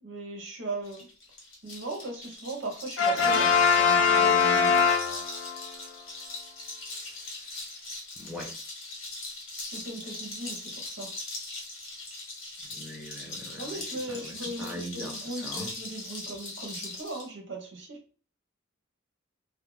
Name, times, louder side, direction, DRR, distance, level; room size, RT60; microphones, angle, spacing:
voice 1, 0.0-1.1 1.6-5.0 9.7-11.1 13.6-18.0, right 2 dB, 60° right, 2 dB, 0.7 m, -38 dB
sound 1, 0.8-17.3, left 2 dB, 90° left, 1.1 m, -40 dB
Brass instrument, 3.0-5.6, left 5 dB, 70° left, 0.4 m, -22 dB
voice 2, 6.9-7.7 8.2-8.6 12.7-15.7, equal, ahead, -3 dB, 0.4 m, -42 dB
2.4 x 2.1 x 3.1 m, 0.37 s
head